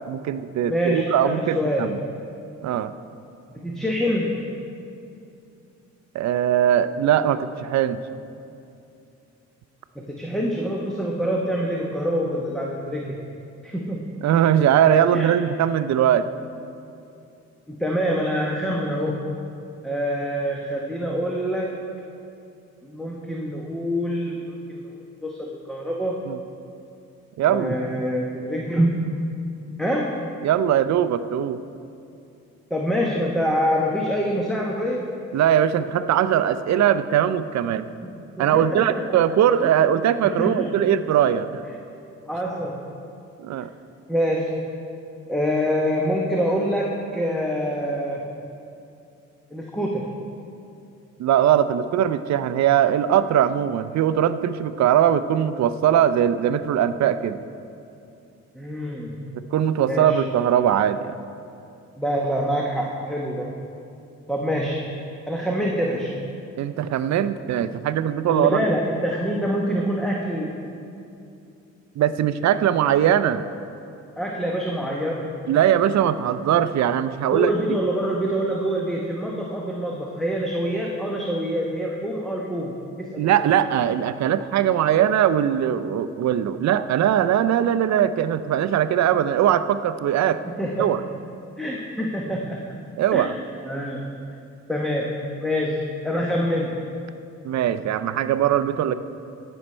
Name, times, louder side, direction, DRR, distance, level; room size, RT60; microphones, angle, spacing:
voice 1, 0.1-2.0 2.6-2.9 6.1-8.0 14.2-16.3 26.3-26.4 27.4-27.8 30.4-31.6 35.3-37.8 38.4-41.5 43.4-43.7 51.2-57.4 59.5-61.2 66.6-68.7 72.0-73.4 75.5-77.8 83.2-90.4 90.8-91.0 93.0-93.3 97.4-98.9, right 10 dB, 65° right, 13 dB, 0.5 m, -20 dB
voice 2, 0.7-1.9 3.6-4.5 9.9-13.3 13.6-14.1 15.1-15.3 17.7-19.3 19.8-21.9 22.8-26.2 27.5-29.0 29.8-30.2 32.7-35.1 38.0-38.1 38.4-39.2 39.6-39.7 40.2-40.7 42.3-42.8 44.1-44.6 45.3-48.3 49.5-50.1 58.5-59.2 59.9-60.2 62.0-63.7 64.3-64.9 65.3-66.2 68.3-70.6 74.2-75.4 77.3-83.4 90.5-90.9 91.6-92.7 93.1-93.3 93.6-94.2 94.7-96.8, equal, ahead, -2 dB, 1.0 m, -26 dB
17.0 x 6.5 x 4.4 m, 2.6 s
cardioid pair, 90°, 30 cm